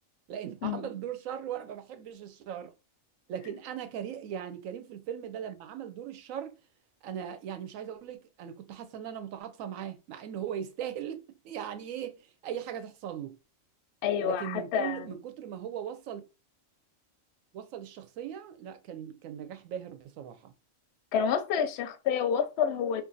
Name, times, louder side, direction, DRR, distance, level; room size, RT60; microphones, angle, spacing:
voice 1, 0.3-2.7 3.3-6.6 7.0-13.4 14.2-16.3 17.5-20.5, right 9 dB, 85° right, 1.0 m, -39 dB
voice 2, 14.0-15.2 21.1-23.0, left 8 dB, 65° left, 0.7 m, -29 dB
2.6 x 2.5 x 3.8 m
omnidirectional pair, 1.4 m